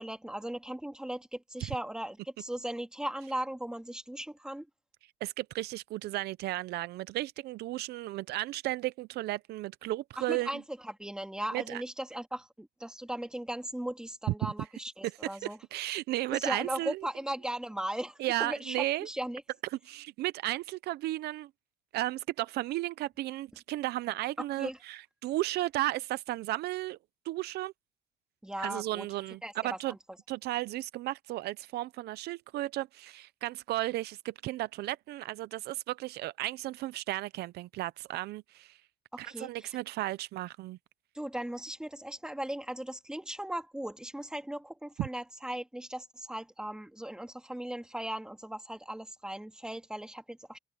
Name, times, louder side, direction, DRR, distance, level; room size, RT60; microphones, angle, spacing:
voice 1, 0.0-4.7 10.2-15.6 16.3-19.4 24.6-24.8 28.4-29.1 29.4-30.0 39.1-39.7 41.1-50.6, right 1 dB, 5° right, 2.5 m, -38 dB
voice 2, 5.2-10.6 11.5-11.8 15.4-17.1 18.2-19.1 19.8-21.5 21.9-27.0 27.3-27.7 28.6-29.9 30.3-38.8 39.2-40.8 45.0-45.1, right 16 dB, 75° right, 0.6 m, -34 dB
open air
cardioid pair, 110°, 17 cm